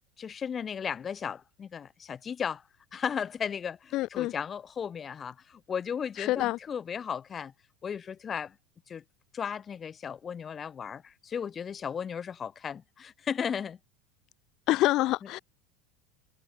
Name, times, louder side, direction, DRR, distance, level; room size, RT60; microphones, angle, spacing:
voice 1, 0.2-2.6 2.9-7.5 7.8-8.5 8.9-9.0 9.3-13.8, left 7 dB, 20° left, 3.9 m, -35 dB
voice 2, 3.9-4.3 6.2-6.6 14.7-15.4, left 17 dB, 40° left, 1.0 m, -26 dB
supercardioid pair, 165°, 0 cm